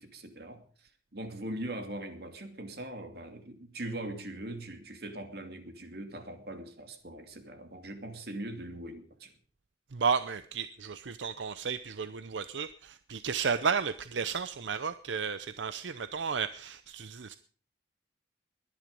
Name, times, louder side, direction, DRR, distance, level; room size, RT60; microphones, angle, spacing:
voice 1, 0.0-9.3, right 1 dB, 60° right, 6 dB, 2.6 m, -41 dB
voice 2, 9.9-17.4, right 6 dB, 85° right, 13 dB, 0.7 m, -33 dB
21.0 x 10.5 x 5.3 m, 0.43 s
head